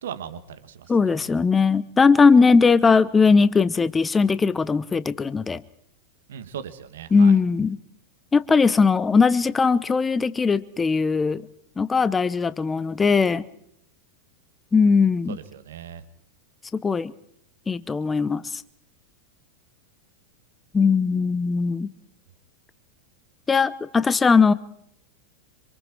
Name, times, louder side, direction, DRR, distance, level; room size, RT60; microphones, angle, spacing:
voice 1, 0.0-1.3 6.3-7.3 15.3-16.0, right 8 dB, 60° right, 10 dB, 2.3 m, -38 dB
voice 2, 0.9-5.6 7.1-7.8 8.3-11.4 11.8-13.5 14.7-15.4 16.7-17.1 17.7-18.6 20.7-21.9 23.5-24.5, left 5 dB, 15° left, 17 dB, 0.9 m, -19 dB
27.0 x 26.5 x 4.7 m, 0.70 s
figure-of-eight pair, 90°, 0 cm